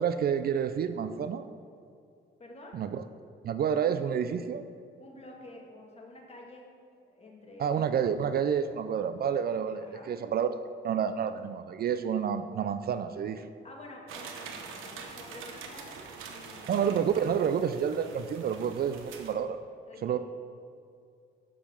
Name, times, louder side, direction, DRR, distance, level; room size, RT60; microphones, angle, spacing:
voice 1, 0.0-1.5 2.7-3.0 3.4-4.6 7.6-13.5 16.7-19.6 20.0-20.2, right 7 dB, 50° right, 11 dB, 0.4 m, -29 dB
voice 2, 2.4-2.8 5.0-7.7 9.8-10.1 13.6-16.7 19.9-20.2, left 1 dB, 30° left, -1 dB, 2.0 m, -49 dB
sound 1, 14.1-19.3, right 5 dB, 85° right, 1.0 m, -45 dB
7.3 x 7.1 x 5.6 m, 2.3 s
cardioid pair, 90°, 20 cm